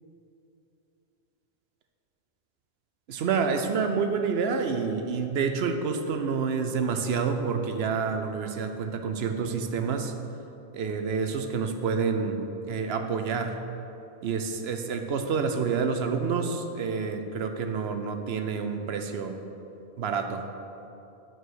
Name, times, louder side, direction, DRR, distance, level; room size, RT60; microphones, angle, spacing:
voice 1, 3.1-10.1 10.7-13.6 14.2-19.4 20.0-20.4, right 5 dB, 70° right, 6 dB, 0.9 m, -28 dB
9.1 x 4.8 x 6.3 m, 2.9 s
omnidirectional pair, 1.1 m